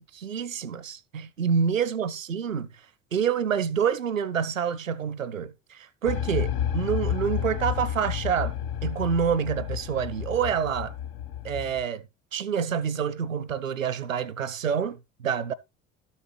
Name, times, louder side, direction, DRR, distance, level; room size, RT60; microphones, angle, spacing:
voice 1, 0.0-2.7 3.1-8.6 8.8-10.9 11.4-12.0 12.3-15.5, right 7 dB, 85° right, 0.7 m, -27 dB
sound 1, 6.0-11.8, left 10 dB, 60° left, 1.1 m, -31 dB
12.5 x 7.2 x 3.1 m
figure-of-eight pair, 60°, 39 cm